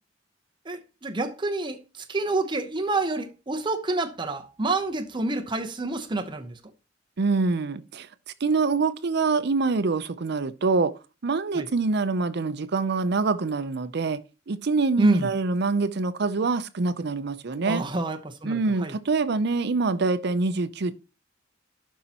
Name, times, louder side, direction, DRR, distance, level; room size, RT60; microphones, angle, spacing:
voice 1, 0.7-6.6 11.5-11.7 15.0-15.3 17.6-18.9, right 2 dB, 25° right, 0.8 m, -28 dB
voice 2, 7.2-8.1 8.4-10.9 11.2-14.2 14.5-17.8 18.4-20.9, right 4 dB, 60° right, 0.6 m, -25 dB
11.5 x 5.6 x 2.9 m
head